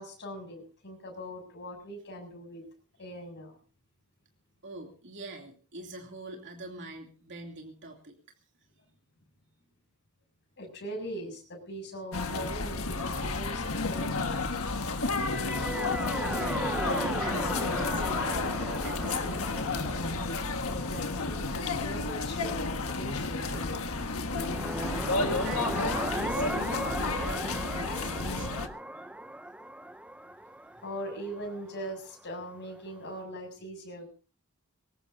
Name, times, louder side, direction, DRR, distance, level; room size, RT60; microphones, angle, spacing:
voice 1, 0.0-2.7 3.0-3.6 10.6-14.4 20.7-24.0 30.8-34.1, equal, 55° left, 2 dB, 7.4 m, -41 dB
voice 2, 4.6-8.2 16.2-19.9 23.5-23.6 25.0-28.5, right 3 dB, 55° right, 1 dB, 2.8 m, -45 dB
sound 1, 12.1-28.7, left 3 dB, 70° left, 1.5 m, -31 dB
sound 2, 15.1-22.3 24.2-32.0, right 1 dB, 5° right, 0.7 m, -37 dB
23.0 x 18.5 x 2.7 m, 0.37 s
head